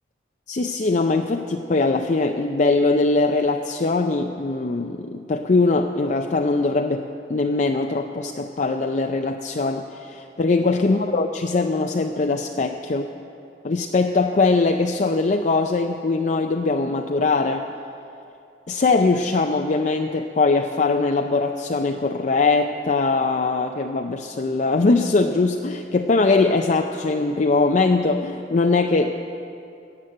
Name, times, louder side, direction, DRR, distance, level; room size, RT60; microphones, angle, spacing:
voice 1, 0.5-13.1 13.6-17.7 18.7-29.3, left 3 dB, 45° left, 4 dB, 0.5 m, -21 dB
14.0 x 8.8 x 7.8 m, 2.6 s
head